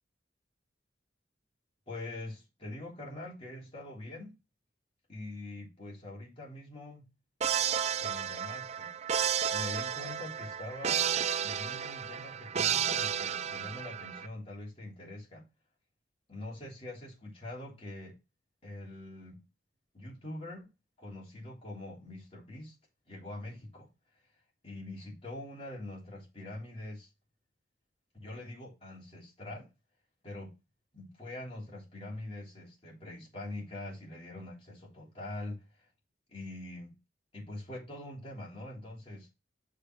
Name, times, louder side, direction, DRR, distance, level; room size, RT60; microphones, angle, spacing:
voice 1, 1.9-4.3 5.1-7.1 8.0-8.9 9.5-11.1 11.4-15.4 16.3-18.2 18.6-19.4 19.9-20.7 21.0-22.7 23.1-23.9 24.6-27.1 28.1-29.7 30.2-30.6 30.9-35.9 36.3-36.9 37.3-39.3, left 1 dB, 30° left, 3.4 m, -44 dB
sound 1, 7.4-14.3, right 8 dB, 35° right, 0.4 m, -32 dB
6.5 x 4.1 x 6.2 m
head